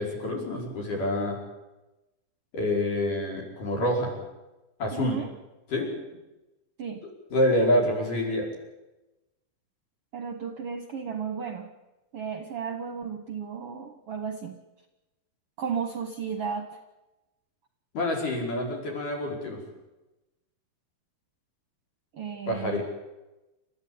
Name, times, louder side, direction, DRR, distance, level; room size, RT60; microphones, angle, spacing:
voice 1, 0.0-1.4 2.5-4.1 4.8-5.2 5.7-5.9 7.3-8.5 17.9-19.6 22.5-22.8, left 1 dB, 60° left, 0 dB, 6.6 m, -27 dB
voice 2, 4.9-5.3 6.8-7.0 10.1-11.7 12.1-14.6 15.6-16.8 22.1-22.8, right 6 dB, 55° right, 6 dB, 1.8 m, -34 dB
29.0 x 14.0 x 8.8 m, 1.0 s
omnidirectional pair, 4.2 m